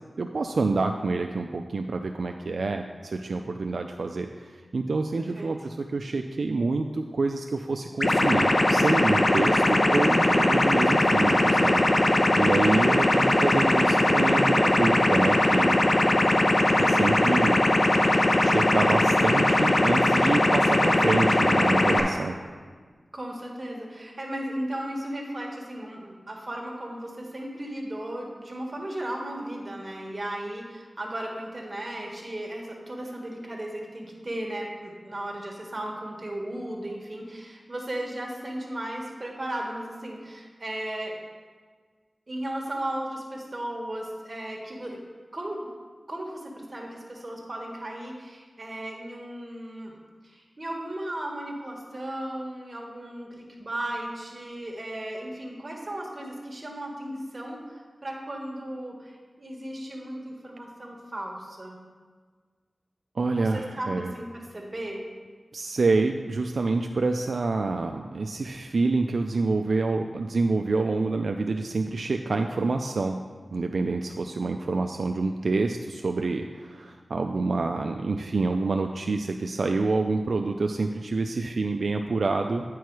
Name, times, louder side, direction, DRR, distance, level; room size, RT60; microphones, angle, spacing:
voice 1, 0.2-11.8 12.4-15.8 16.7-17.6 18.4-22.4 63.2-64.1 65.5-73.2 73.5-82.6, right 3 dB, 80° right, 4 dB, 0.3 m, -27 dB
voice 2, 5.2-5.5 12.3-12.8 23.1-41.2 42.3-45.0 45.3-45.6 46.1-49.9 50.2-61.8 63.4-65.0, right 1 dB, 40° right, -1 dB, 1.6 m, -35 dB
sound 1, 8.0-22.0, left 1 dB, 50° left, 0.8 m, -21 dB
9.2 x 4.6 x 4.7 m, 1.5 s
wide cardioid pair, 55°, 0 cm